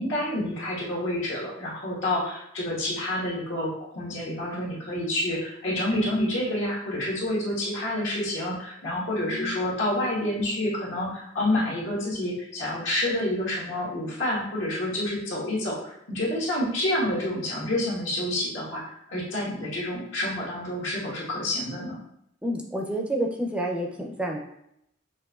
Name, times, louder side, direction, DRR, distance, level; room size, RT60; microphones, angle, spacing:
voice 1, 0.0-18.8 19.1-22.0, left 1 dB, 75° left, -6 dB, 1.5 m, -28 dB
voice 2, 22.4-24.4, right 1 dB, 5° right, 0 dB, 0.5 m, -29 dB
6.1 x 2.6 x 2.4 m, 0.76 s
head